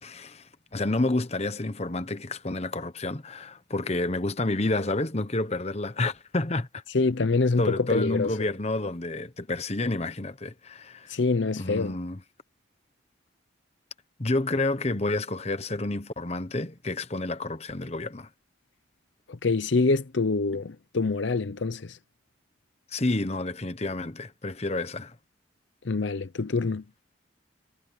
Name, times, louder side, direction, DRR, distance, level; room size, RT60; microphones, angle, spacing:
voice 1, 0.0-6.8 7.6-11.1 11.6-12.2 14.2-18.3 22.9-25.1, left 2 dB, 30° left, 1.0 m, -29 dB
voice 2, 6.9-8.3 11.1-12.0 19.3-22.0 25.8-26.8, left 3 dB, 65° left, 0.7 m, -25 dB
head